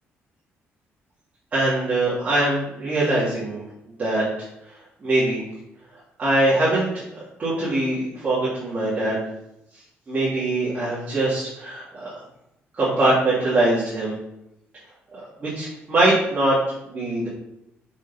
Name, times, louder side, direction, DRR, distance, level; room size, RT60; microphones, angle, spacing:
voice 1, 1.5-3.6 4.0-4.2 5.0-5.4 6.2-7.0 7.4-9.2 10.1-12.1 12.7-14.1 15.4-16.6 16.9-17.3, right 2 dB, 30° right, -9 dB, 3.1 m, -22 dB
7.3 x 6.2 x 4.5 m, 0.82 s
cardioid pair, 155°, 5 cm